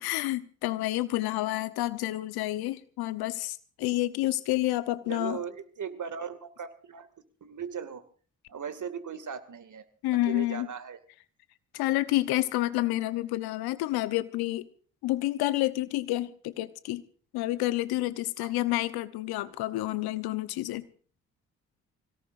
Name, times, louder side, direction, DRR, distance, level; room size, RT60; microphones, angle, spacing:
voice 1, 0.0-5.4 10.0-10.7 11.7-14.7 15.0-17.0 17.3-20.9, left 17 dB, 75° left, 15 dB, 1.1 m, -29 dB
voice 2, 5.1-7.1 7.4-8.0 8.5-9.9 10.2-11.0 13.2-13.3 18.4-18.5, right 7 dB, 50° right, 11 dB, 2.4 m, -38 dB
25.0 x 17.5 x 2.6 m, 0.42 s
hypercardioid pair, 40°, 38 cm